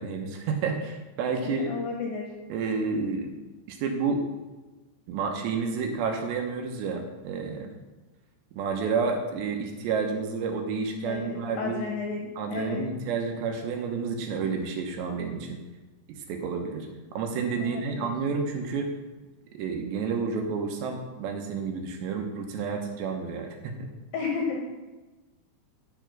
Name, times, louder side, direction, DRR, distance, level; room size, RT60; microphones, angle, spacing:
voice 1, 0.0-1.7 2.5-3.3 3.7-4.3 5.1-7.7 8.5-11.9 12.4-15.6 16.1-16.9 17.1-18.9 19.5-23.9, right 5 dB, 75° right, 4 dB, 3.1 m, -30 dB
voice 2, 1.4-2.3 11.1-12.8 17.6-18.1 24.1-24.6, left 5 dB, 70° left, 1 dB, 2.4 m, -33 dB
10.0 x 7.1 x 6.1 m, 1.2 s
omnidirectional pair, 5.4 m